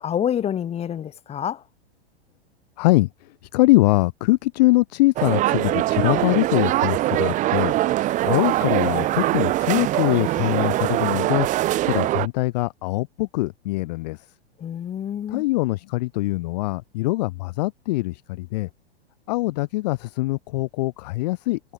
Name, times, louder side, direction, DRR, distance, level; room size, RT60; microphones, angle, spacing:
voice 1, 0.0-1.6 14.6-15.4, left 9 dB, 20° left, 1.4 m, -27 dB
voice 2, 2.8-11.5 11.8-14.3 15.3-18.7 19.3-21.6, left 20 dB, 40° left, 0.6 m, -23 dB
sound 1, 5.2-12.3, right 16 dB, 25° right, 0.7 m, -22 dB
figure-of-eight pair, 100°, 32 cm